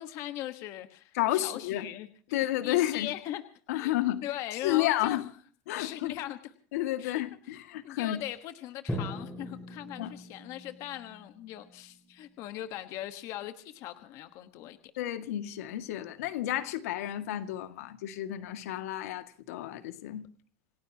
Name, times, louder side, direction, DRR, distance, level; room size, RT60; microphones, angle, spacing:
voice 1, 0.0-3.4 3.7-5.2 5.8-6.5 7.0-7.6 7.8-14.8, left 13 dB, 40° left, 1.4 m, -40 dB
voice 2, 1.2-1.9 2.3-3.1 3.7-4.2 4.6-5.2 5.7-6.1 6.7-8.2 10.0-10.1 15.0-20.3, left 14 dB, 80° left, 2.1 m, -31 dB
Drum, 8.9-12.9, left 1 dB, ahead, 6.2 m, -41 dB
28.0 x 17.5 x 2.9 m
supercardioid pair, 165°, 8 cm